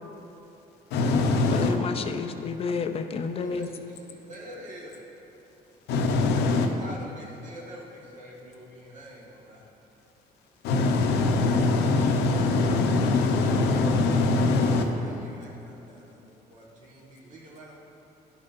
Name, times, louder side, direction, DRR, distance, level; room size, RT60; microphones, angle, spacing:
voice 1, 0.9-1.8 5.9-6.7 10.6-14.9, left 3 dB, 85° left, 4 dB, 0.7 m, -23 dB
voice 2, 1.5-3.7, left 5 dB, 35° left, 7 dB, 0.4 m, -30 dB
voice 3, 3.1-5.0 6.5-9.7 14.7-17.8, equal, 45° right, -3 dB, 1.6 m, -46 dB
12.0 x 5.3 x 2.6 m, 3.0 s
cardioid pair, 110°, 17 cm